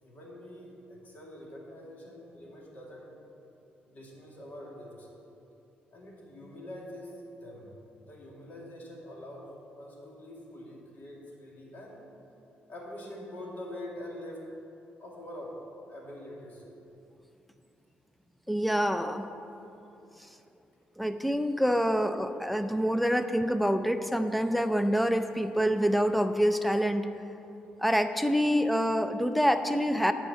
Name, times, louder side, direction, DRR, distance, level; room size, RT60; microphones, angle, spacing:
voice 1, 0.0-3.2 3.9-5.1 5.9-7.7 8.0-9.5 9.8-12.0 12.7-14.5 15.0-15.6 15.9-16.6, left 1 dB, 50° left, -2 dB, 2.1 m, -44 dB
voice 2, 18.5-19.2 21.0-27.1 27.8-30.1, equal, ahead, 9 dB, 0.5 m, -26 dB
10.5 x 4.7 x 8.0 m, 2.8 s
cardioid pair, 125°, 4 cm